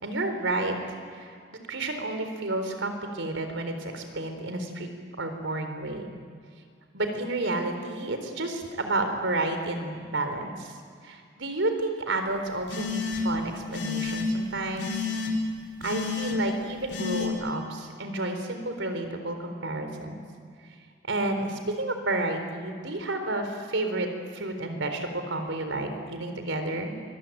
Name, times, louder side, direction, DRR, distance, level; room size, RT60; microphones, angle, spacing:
voice 1, 0.0-1.4 1.7-4.9 5.2-6.1 6.9-10.8 11.0-15.0 15.8-20.2 21.1-24.1 24.3-26.9, right 2 dB, 80° right, 6 dB, 4.0 m, -31 dB
sound 1, 12.7-13.4 13.7-14.3 14.8-15.3 15.8-16.3 16.9-17.3, left 6 dB, 60° left, 3.8 m, -30 dB
25.5 x 21.5 x 9.2 m, 2.2 s
head